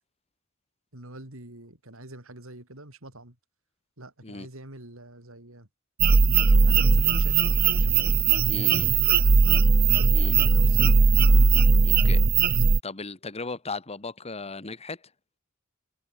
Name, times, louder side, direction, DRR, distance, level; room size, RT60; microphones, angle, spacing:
voice 1, 0.9-3.4 4.0-5.7 6.6-8.1 8.5-9.6 10.1-11.0, right 1 dB, 70° right, 5.1 m, -45 dB
sound 1, 6.0-12.8, right 4 dB, 45° right, 0.7 m, -19 dB
voice 2, 8.5-8.9 10.1-10.3 11.8-12.2 12.8-15.0, left 3 dB, 30° left, 1.6 m, -36 dB
head